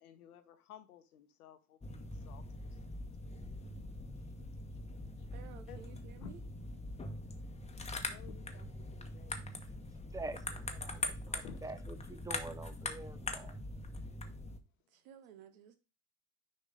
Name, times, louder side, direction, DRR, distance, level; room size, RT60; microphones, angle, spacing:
voice 1, 0.0-2.6 5.7-6.3 8.1-9.5 10.0-10.4 10.7-11.6, left 10 dB, 80° left, 1.0 m, -56 dB
sound 1, 1.8-14.6, left 2 dB, 15° left, 1.1 m, -43 dB
voice 2, 5.3-6.4 14.9-15.8, right 8 dB, 70° right, 1.2 m, -54 dB
voice 3, 10.1-13.6, right 2 dB, 10° right, 0.7 m, -46 dB
6.4 x 4.9 x 3.8 m
hypercardioid pair, 65°, 44 cm